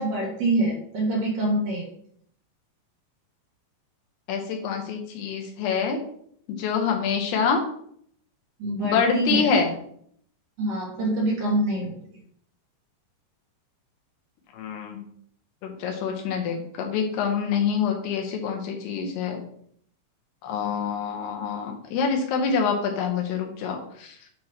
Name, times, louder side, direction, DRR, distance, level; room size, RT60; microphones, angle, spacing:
voice 1, 0.0-1.9 8.6-9.5 10.6-11.9, right 2 dB, 60° right, -3 dB, 2.8 m, -25 dB
voice 2, 4.3-6.0 6.5-7.6 8.8-9.7 14.5-15.0 15.6-19.4 20.4-24.2, left 6 dB, 75° left, 2 dB, 2.7 m, -26 dB
7.7 x 3.0 x 5.6 m, 0.66 s
omnidirectional pair, 5.0 m